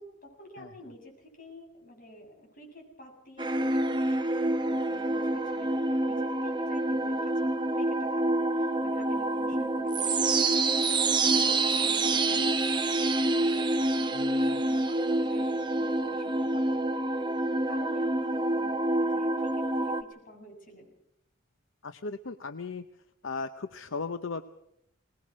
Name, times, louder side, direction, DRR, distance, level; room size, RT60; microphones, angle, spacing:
voice 1, 0.0-20.9, left 1 dB, 45° left, 2 dB, 7.6 m, -49 dB
sound 1, 3.4-20.0, right 2 dB, 20° right, 1.1 m, -27 dB
voice 2, 14.1-14.6 21.8-22.8 23.2-24.4, left 4 dB, 70° left, 10 dB, 0.8 m, -37 dB
22.5 x 20.0 x 6.3 m, 0.79 s
head